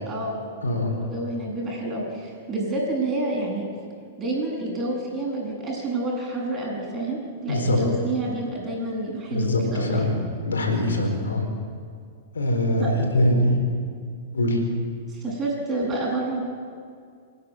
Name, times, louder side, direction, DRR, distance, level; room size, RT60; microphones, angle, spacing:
voice 1, 0.0-3.7 4.2-10.1 12.8-12.9 15.1-16.4, right 2 dB, 25° right, -1 dB, 7.8 m, -29 dB
voice 2, 0.6-1.0 7.5-7.8 9.3-11.5 12.3-13.6 14.3-14.6, left 1 dB, 80° left, 3 dB, 4.4 m, -23 dB
26.5 x 11.5 x 9.6 m, 2.2 s
hypercardioid pair, 105°, 0 cm